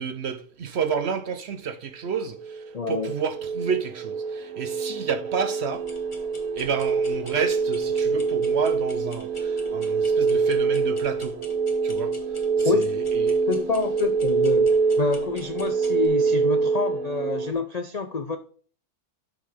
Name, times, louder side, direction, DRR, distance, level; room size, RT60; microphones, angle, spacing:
voice 1, 0.0-2.4 2.9-5.8 6.5-11.4 11.8-12.1 12.6-12.8 13.1-13.4, right 6 dB, 55° right, 0.9 m, -30 dB
sound 1, 2.4-17.5, right 5 dB, 80° right, 1.2 m, -25 dB
voice 2, 2.7-3.1 12.6-12.9 13.5-18.4, left 5 dB, 55° left, 0.4 m, -28 dB
sound 2, 5.7-16.1, left 2 dB, 20° left, 1.2 m, -49 dB
7.2 x 5.7 x 5.0 m
omnidirectional pair, 1.5 m